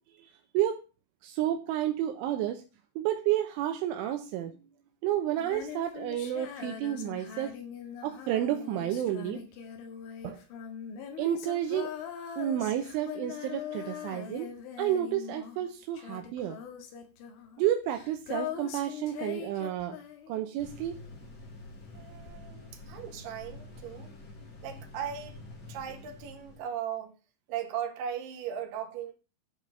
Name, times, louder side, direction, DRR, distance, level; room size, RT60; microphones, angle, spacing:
voice 1, 0.2-0.8 1.2-2.6 3.0-4.6 5.0-7.5 8.0-9.4 10.2-10.4 11.2-11.9 12.4-14.5 14.8-16.6 17.6-20.0 20.3-21.0, right 11 dB, 80° right, 3.2 m, -31 dB
Female singing, 5.4-20.7 22.3-22.4, left 9 dB, 75° left, 4.1 m, -41 dB
sound 1, 20.6-26.6, left 2 dB, 30° left, 2.7 m, -47 dB
voice 2, 21.9-24.1 24.6-25.4 25.7-27.1 27.5-29.1, right 9 dB, 65° right, 3.4 m, -37 dB
12.5 x 5.2 x 6.7 m
omnidirectional pair, 5.6 m